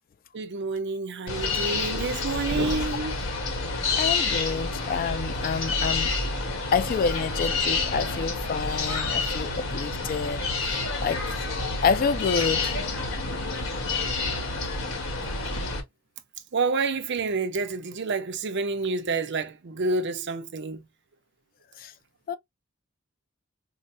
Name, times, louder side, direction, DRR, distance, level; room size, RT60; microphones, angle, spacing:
voice 1, 0.3-3.2 16.5-20.8, right 3 dB, 60° right, 0.6 m, -28 dB
sound 1, 1.3-15.8, left 3 dB, 75° left, 1.2 m, -28 dB
voice 2, 4.0-6.1 6.7-10.4 11.0-11.2 11.8-12.7 21.8-21.9 22.3-22.4, left 5 dB, 45° left, 0.3 m, -27 dB
4.7 x 2.0 x 2.6 m
head